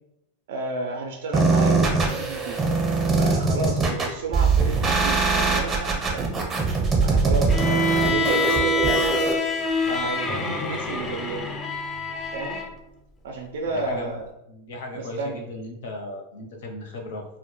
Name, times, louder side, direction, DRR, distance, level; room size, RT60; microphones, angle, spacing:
voice 1, 0.5-2.6 3.2-6.3 7.0-9.1 9.8-11.5 12.3-12.6 13.2-14.2 14.9-15.4, right 2 dB, 75° right, 2 dB, 0.4 m, -31 dB
sound 1, 1.3-9.3, right 4 dB, 20° right, 0.6 m, -22 dB
Bowed string instrument, 7.5-12.7, left 2 dB, 20° left, 0.3 m, -26 dB
voice 2, 13.7-14.2 14.5-17.2, left 2 dB, 75° left, 2 dB, 0.6 m, -36 dB
2.1 x 2.1 x 3.0 m, 0.83 s
supercardioid pair, 130°, 0 cm